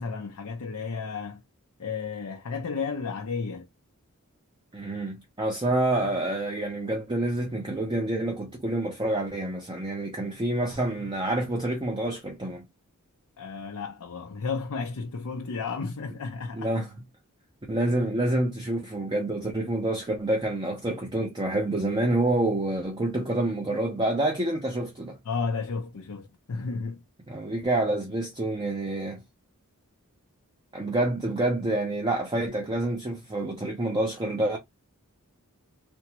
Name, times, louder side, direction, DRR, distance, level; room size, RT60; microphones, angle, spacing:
voice 1, 0.0-1.4 1.8-3.7 13.4-16.7 25.2-27.0, left 5 dB, 80° left, 0.6 m, -33 dB
voice 2, 4.7-12.6 16.5-16.9 17.7-25.2 27.3-29.2 30.7-34.6, right 1 dB, 20° right, 0.5 m, -27 dB
3.4 x 2.0 x 2.8 m
head